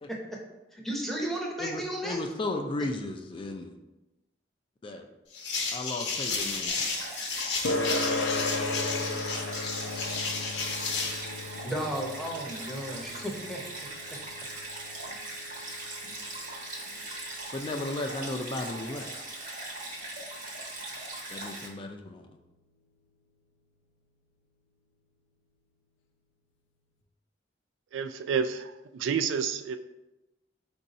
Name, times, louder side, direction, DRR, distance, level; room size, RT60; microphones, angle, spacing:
voice 1, 0.1-2.2 11.6-13.6 14.1-14.2, right 1 dB, ahead, -1 dB, 0.7 m, -34 dB
voice 2, 1.6-3.7 4.8-5.1 5.7-6.9 17.5-19.1 21.3-22.2, left 2 dB, 30° left, 4 dB, 0.3 m, -35 dB
sound 1, 5.3-11.2, left 4 dB, 65° left, 0.8 m, -32 dB
Stream, 6.7-21.7, right 2 dB, 50° right, 1.0 m, -40 dB
sound 2, 7.6-22.6, left 2 dB, 85° left, 0.5 m, -37 dB
voice 3, 27.9-29.8, right 6 dB, 80° right, 10 dB, 0.3 m, -29 dB
4.6 x 2.6 x 4.1 m, 0.98 s
head